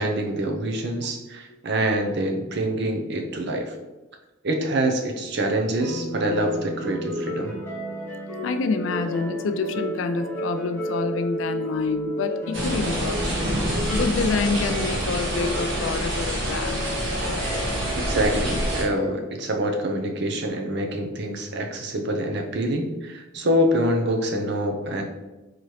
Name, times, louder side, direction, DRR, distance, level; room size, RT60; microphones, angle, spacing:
voice 1, 0.0-3.7 4.4-7.5 17.9-25.0, right 1 dB, 60° right, 4 dB, 0.6 m, -25 dB
sound 1, 5.8-19.0, equal, 15° left, 0.9 m, -33 dB
voice 2, 8.4-16.9, left 4 dB, 70° left, 10 dB, 0.3 m, -27 dB
sound 2, 12.5-18.8, right 1 dB, 75° right, 1.2 m, -27 dB
3.9 x 2.9 x 3.1 m, 1.1 s
head